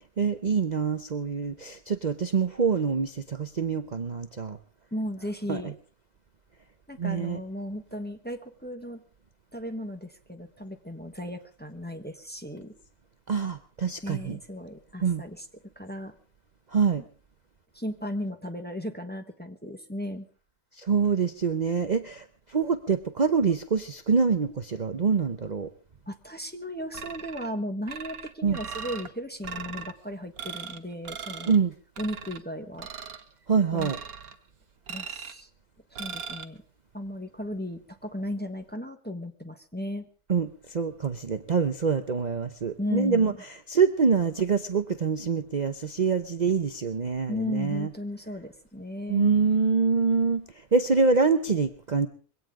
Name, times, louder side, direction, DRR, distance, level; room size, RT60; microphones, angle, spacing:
voice 1, 0.2-4.6 5.5-5.6 7.0-7.4 13.3-14.4 15.0-15.2 16.7-17.0 20.8-25.7 28.4-28.6 31.5-31.7 33.5-34.0 40.3-43.3 43.7-47.9 49.1-52.1, right 5 dB, 35° right, 8 dB, 0.8 m, -25 dB
voice 2, 4.9-5.7 6.9-9.0 9.5-12.7 14.0-15.4 15.7-16.1 17.7-20.3 26.1-31.5 32.0-32.9 33.7-33.9 34.9-35.5 35.9-36.6 36.9-40.0 42.8-43.4 47.3-49.3, equal, 5° left, 4 dB, 1.3 m, -35 dB
sound 1, 26.9-27.5 27.9-29.1 29.4-29.9 30.4-30.8 31.1-31.6 32.0-32.4 32.8-33.2 33.8-34.4 34.9-35.4 36.0-36.4, right 6 dB, 85° right, 1.6 m, -39 dB
22.0 x 17.5 x 3.7 m, 0.40 s
omnidirectional pair, 1.5 m